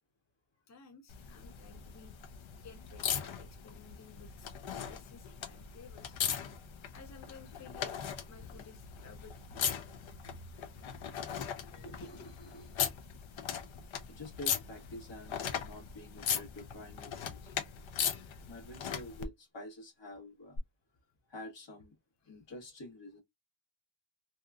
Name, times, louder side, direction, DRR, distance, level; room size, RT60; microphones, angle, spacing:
voice 1, 0.7-2.2 2.6-4.5 4.8-6.1 6.9-8.0 8.3-9.7 21.2-21.3 22.2-22.4, left 5 dB, 40° left, 0.5 m, -55 dB
sound 1, 1.1-19.3 20.6-20.7, left 8 dB, 90° left, 0.6 m, -39 dB
voice 2, 11.7-12.8 14.1-17.5 18.5-20.6 21.3-22.0 22.2-23.2, left 1 dB, 70° left, 1.3 m, -48 dB
2.7 x 2.3 x 2.3 m
wide cardioid pair, 170°, 45 cm